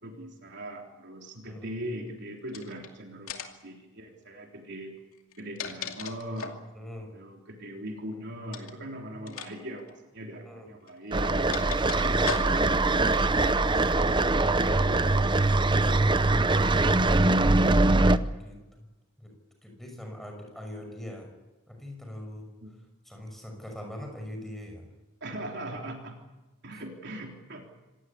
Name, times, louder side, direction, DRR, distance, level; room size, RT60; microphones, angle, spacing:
voice 1, 0.0-5.0 5.4-6.6 7.0-11.3 12.0-12.8 22.6-22.7 25.2-26.2 26.6-27.7, right 1 dB, 55° right, 2 dB, 3.6 m, -40 dB
sound 1, 2.5-2.9 3.3-3.7 5.2-6.7 8.5-8.8 9.3-9.5 9.8-9.9 10.9-12.8, left 6 dB, 85° left, 2.6 m, -38 dB
voice 2, 6.7-7.1 10.5-10.7 12.9-13.3 17.9-18.9 19.2-19.4 19.6-21.3 21.7-22.5 23.1-24.8, left 1 dB, ahead, 3 dB, 6.0 m, -42 dB
sound 2, 11.1-18.2, right 2 dB, 20° right, 0.7 m, -22 dB
26.5 x 17.5 x 8.7 m, 1.1 s
head